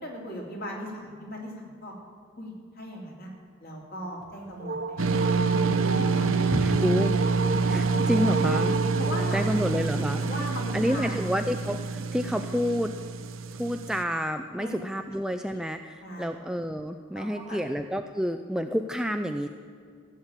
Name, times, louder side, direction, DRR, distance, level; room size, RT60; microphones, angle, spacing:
voice 1, 0.0-1.9 2.4-3.3 3.6-6.5 9.0-9.5 10.2-11.3 14.6-14.7 15.5-15.6 16.0-16.3 17.1-17.6, equal, 50° left, -1 dB, 3.0 m, -38 dB
sound 1, 4.2-10.3, right 3 dB, 55° right, 0.9 m, -31 dB
sound 2, 5.0-14.0, right 4 dB, 75° right, 0.7 m, -27 dB
voice 2, 6.5-7.2 7.7-8.8 9.3-10.3 10.7-12.9 13.6-19.5, equal, 5° right, 7 dB, 0.3 m, -29 dB
15.0 x 7.3 x 8.9 m, 2.1 s
head